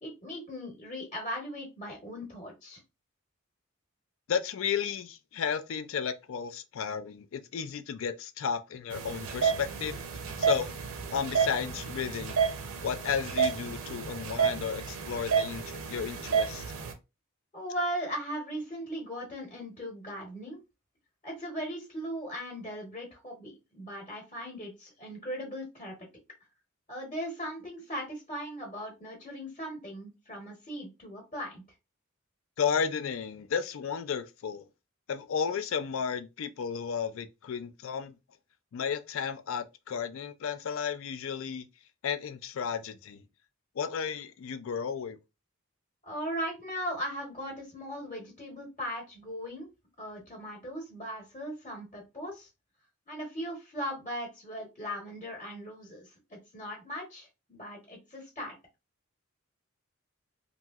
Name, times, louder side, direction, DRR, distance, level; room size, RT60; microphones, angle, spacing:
voice 1, 0.0-2.8 17.5-20.6 21.2-25.9 26.9-31.6 46.0-49.7 50.0-52.5 53.1-58.5, equal, 30° left, 0.9 m, -38 dB
voice 2, 4.3-10.0 10.4-10.7 11.1-12.4 12.8-16.6 32.6-34.7 35.1-38.2 38.7-41.7 42.0-43.2 43.8-45.2, left 7 dB, 65° left, 0.4 m, -33 dB
sound 1, 8.9-16.9, right 6 dB, 75° right, 0.6 m, -31 dB
2.9 x 2.6 x 2.3 m
head